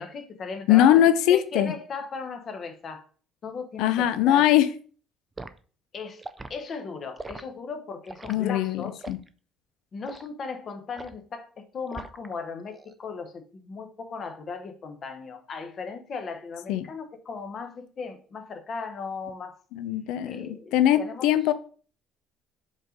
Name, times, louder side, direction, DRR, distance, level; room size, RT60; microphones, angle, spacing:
voice 1, 0.0-1.0 1.3-3.0 3.4-4.5 5.9-6.2 6.5-9.0 9.9-19.6 20.2-21.3, left 5 dB, 30° left, 0.8 m, -37 dB
voice 2, 0.7-1.7 3.8-4.7 8.3-9.2 16.7-16.8 19.8-21.5, left 12 dB, 75° left, 0.5 m, -21 dB
Liquid, 5.4-5.6 6.2-6.5 7.2-7.4 8.1-8.4 9.0-9.3 10.0-10.3 11.0-11.2 11.9-12.3 12.7-12.9, right 3 dB, 10° right, 0.3 m, -40 dB
5.3 x 3.8 x 5.0 m
cardioid pair, 175°, 0 cm